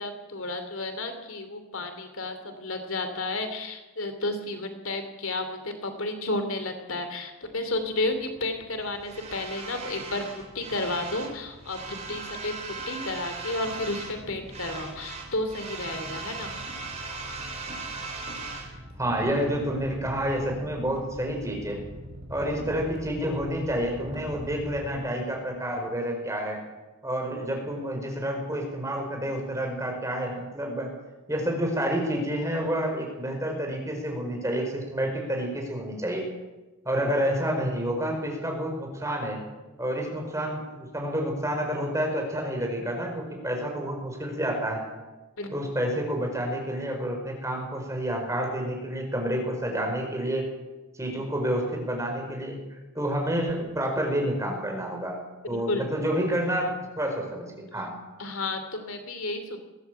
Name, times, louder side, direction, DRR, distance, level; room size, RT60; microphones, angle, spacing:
voice 1, 0.0-10.2 10.5-16.5 45.4-45.5 55.5-55.9 58.2-59.6, left 2 dB, 65° left, 7 dB, 2.8 m, -32 dB
sound 1, 7.4-24.9, right 3 dB, 30° right, 4.5 m, -39 dB
voice 2, 19.0-21.8 22.3-26.6 27.0-30.9 31.3-36.2 36.9-39.4 39.8-44.8 45.5-50.5 51.0-55.2 55.5-57.5 57.7-57.9, equal, 15° right, 1 dB, 5.2 m, -29 dB
21.5 x 16.0 x 8.3 m, 1.1 s
head